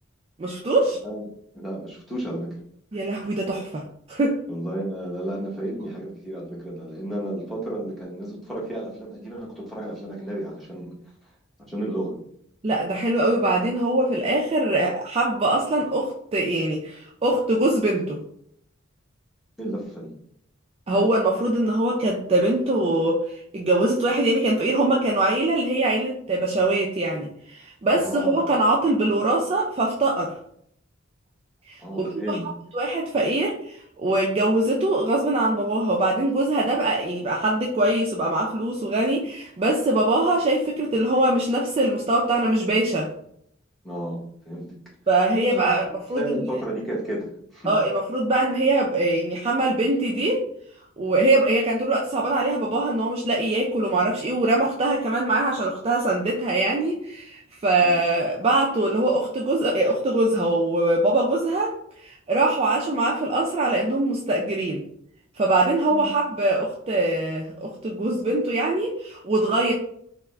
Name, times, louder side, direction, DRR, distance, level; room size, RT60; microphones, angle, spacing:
voice 1, 0.4-1.0 2.9-3.8 4.1-4.4 12.6-18.2 20.9-30.3 31.7-32.4 32.7-43.1 45.1-45.8 46.1-46.4 47.7-50.4 51.0-61.7 62.0-64.8 65.4-69.7, right 2 dB, 30° right, -2 dB, 0.3 m, -23 dB
voice 2, 1.5-2.5 4.5-10.9 11.7-12.1 19.6-20.1 27.9-28.4 31.8-32.5 43.8-44.7 45.3-47.8 57.8-58.0 65.9-66.1, right 1 dB, ahead, -5 dB, 0.9 m, -32 dB
3.4 x 2.0 x 3.3 m, 0.68 s
head